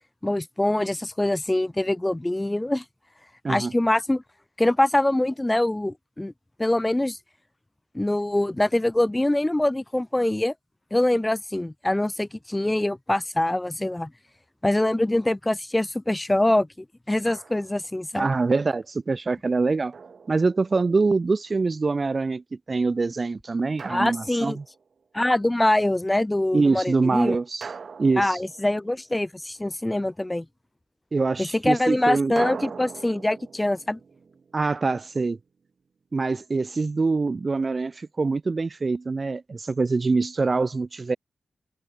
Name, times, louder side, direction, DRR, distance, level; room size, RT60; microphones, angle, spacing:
voice 1, 0.2-2.8 3.5-4.2 4.6-6.3 6.6-7.2 7.9-10.5 10.9-14.1 14.6-16.7 17.1-18.3 23.9-24.6 25.1-27.4 28.2-30.5 31.4-34.0, left 1 dB, 15° left, 2.5 m, -24 dB
Drum, 17.2-17.9 19.9-21.0 23.8-24.9 27.6-29.3 32.4-35.3, right 5 dB, 60° right, 4.2 m, -40 dB
voice 2, 18.2-19.9 20.3-24.6 26.5-27.7 28.0-28.4 31.1-32.3 34.5-35.4 36.1-41.2, right 3 dB, 40° right, 1.1 m, -24 dB
cardioid pair, 75°, 0 cm